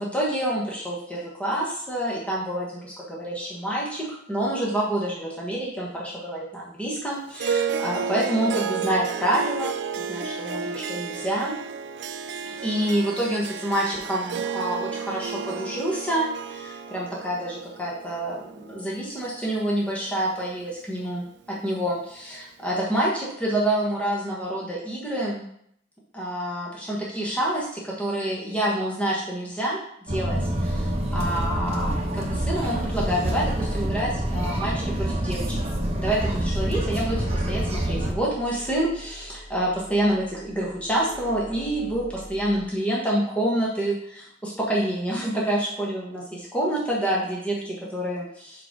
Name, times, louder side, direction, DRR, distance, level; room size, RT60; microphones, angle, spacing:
voice 1, 0.0-11.6 12.4-21.3 21.6-25.4 26.1-29.8 30.1-35.6 36.0-48.6, right 1 dB, 5° left, -5 dB, 1.3 m, -27 dB
Harp, 7.4-19.9, right 6 dB, 60° right, 0.4 m, -32 dB
sound 1, 30.1-38.1, right 1 dB, 30° right, 1.1 m, -26 dB
sound 2, 33.1-42.6, equal, 55° left, 1.3 m, -43 dB
5.0 x 4.9 x 6.0 m, 0.70 s
head